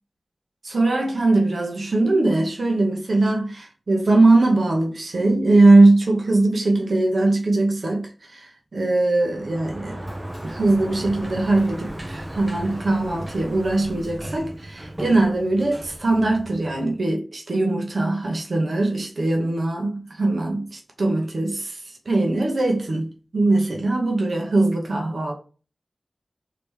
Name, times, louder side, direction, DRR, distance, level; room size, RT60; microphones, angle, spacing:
voice 1, 0.6-10.0 10.4-23.1 23.3-25.3, right 2 dB, 70° right, 0.9 m, -21 dB
Sliding door, 9.2-17.0, right 1 dB, 20° right, 0.7 m, -36 dB
3.3 x 2.9 x 4.6 m
wide cardioid pair, 85°, 0 cm